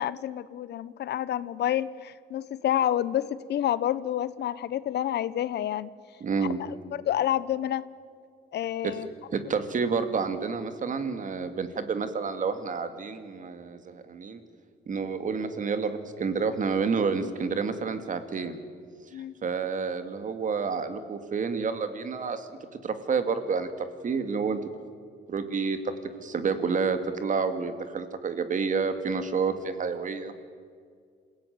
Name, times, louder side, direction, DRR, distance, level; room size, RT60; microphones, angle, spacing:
voice 1, 0.0-5.9 6.4-7.9 8.5-9.1 19.1-19.3, left 11 dB, 70° left, 17 dB, 0.9 m, -29 dB
voice 2, 6.2-6.6 8.8-8.9 9.3-14.4 14.9-18.6 19.4-22.5 22.8-24.6 25.3-25.9 26.2-30.3, right 5 dB, 45° right, 10 dB, 2.3 m, -29 dB
27.5 x 16.5 x 9.4 m, 2.1 s
cardioid pair, 115°, 18 cm